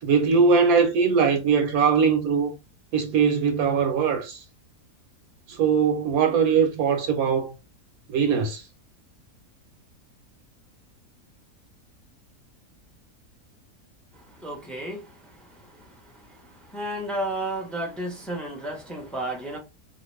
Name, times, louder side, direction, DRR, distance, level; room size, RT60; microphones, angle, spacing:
voice 1, 0.0-2.6 2.9-4.4 5.5-7.5 8.1-8.6, right 6 dB, 75° right, 1.0 m, -21 dB
voice 2, 14.4-15.0 16.7-19.6, right 1 dB, ahead, 0.5 m, -31 dB
2.7 x 2.4 x 3.1 m
omnidirectional pair, 1.7 m